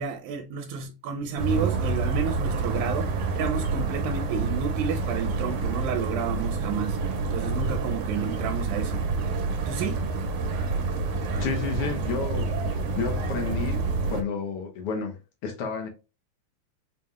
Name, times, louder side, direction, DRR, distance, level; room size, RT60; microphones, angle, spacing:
voice 1, 0.0-7.0 7.3-9.0 9.7-10.1, right 6 dB, 90° right, 2.0 m, -31 dB
sound 1, 1.4-14.2, right 3 dB, 70° right, 2.0 m, -28 dB
voice 2, 11.4-15.9, left 5 dB, 60° left, 1.7 m, -31 dB
5.5 x 3.4 x 2.3 m
omnidirectional pair, 3.4 m